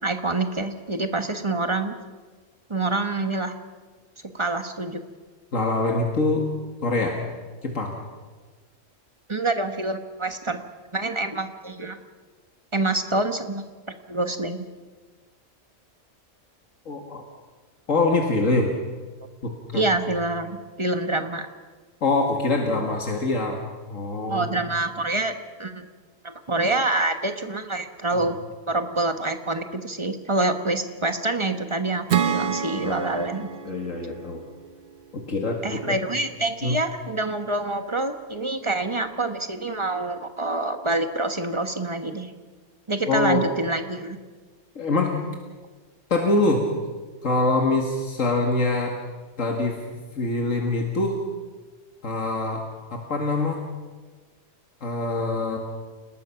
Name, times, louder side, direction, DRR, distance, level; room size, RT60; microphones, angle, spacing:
voice 1, 0.0-2.0 2.7-3.5 4.3-5.0 9.3-10.6 10.9-12.0 12.7-13.6 14.1-14.7 19.7-21.5 24.3-25.3 25.6-25.9 26.2-28.4 28.7-33.5 35.6-42.3 42.9-44.2, right 2 dB, 25° right, 7 dB, 1.3 m, -26 dB
voice 2, 5.5-6.4 6.8-7.2 7.6-8.0 16.9-17.2 17.9-18.7 19.4-19.9 22.0-23.6 23.9-24.6 28.1-28.2 32.8-33.2 33.7-34.4 35.1-36.0 36.6-36.8 43.1-43.4 44.8-45.2 46.1-46.6 47.2-48.9 49.4-51.2 52.0-52.6 52.9-53.6 54.8-55.6, left 2 dB, 75° left, 1 dB, 2.4 m, -24 dB
Acoustic guitar / Strum, 32.1-35.5, right 8 dB, 50° right, 0.9 m, -29 dB
29.0 x 20.0 x 5.9 m, 1.4 s
omnidirectional pair, 1.3 m